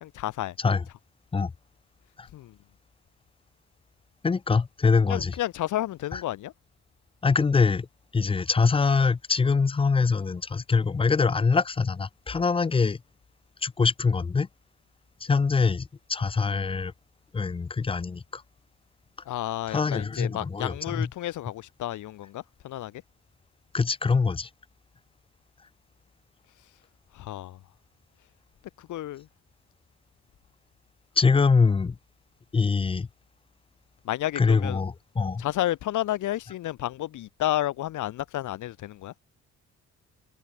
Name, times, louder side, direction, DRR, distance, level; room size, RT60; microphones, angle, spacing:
voice 1, 0.0-0.6 2.3-2.6 5.1-6.5 19.3-23.0 27.1-27.6 28.8-29.3 34.0-34.8 35.4-39.1, left 14 dB, 80° left, 2.2 m, -31 dB
voice 2, 4.2-5.3 6.1-6.2 7.2-7.9 8.1-13.0 13.6-14.5 15.2-16.9 17.3-18.4 19.7-21.1 23.7-24.5 31.2-32.0 32.5-33.1 34.4-35.4, left 4 dB, 20° left, 0.5 m, -24 dB
cardioid pair, 90°, 30 cm